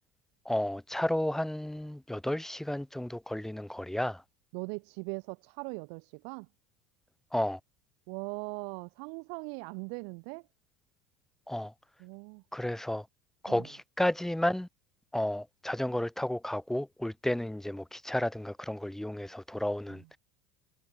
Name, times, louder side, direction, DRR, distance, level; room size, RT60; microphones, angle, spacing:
voice 1, 0.5-4.2 7.3-7.6 11.5-11.7 12.5-13.1 13.4-14.7 15.1-20.2, left 1 dB, 5° left, 2.1 m, -32 dB
voice 2, 4.5-6.5 8.1-10.5 12.0-12.4 13.5-13.7 19.9-20.1, right 40 dB or more, 70° right, 5.5 m, -40 dB
supercardioid pair, 115°, 12 cm